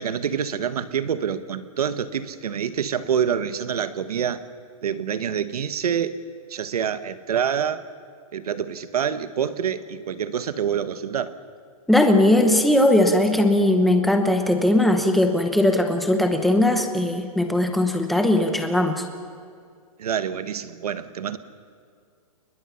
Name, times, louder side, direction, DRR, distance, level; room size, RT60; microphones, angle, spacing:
voice 1, 0.0-4.4 4.8-6.2 6.5-7.9 8.3-11.3 20.0-21.4, right 8 dB, 85° right, 12 dB, 1.3 m, -26 dB
voice 2, 11.9-19.0, left 1 dB, ahead, 5 dB, 0.9 m, -19 dB
29.0 x 21.5 x 5.7 m, 2.2 s
hypercardioid pair, 175°, 19 cm